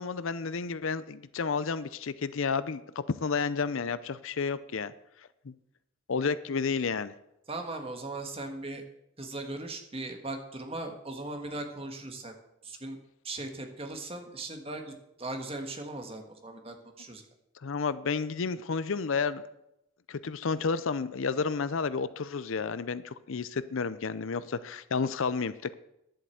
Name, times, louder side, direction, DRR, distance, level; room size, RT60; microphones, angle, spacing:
voice 1, 0.0-4.9 6.1-7.1 17.6-19.4 20.1-25.7, left 5 dB, 70° left, 16 dB, 0.5 m, -31 dB
voice 2, 7.5-8.8 9.2-12.4 12.6-13.0 13.2-17.2, right 2 dB, 25° right, 4 dB, 1.5 m, -38 dB
11.0 x 7.7 x 7.8 m, 0.83 s
head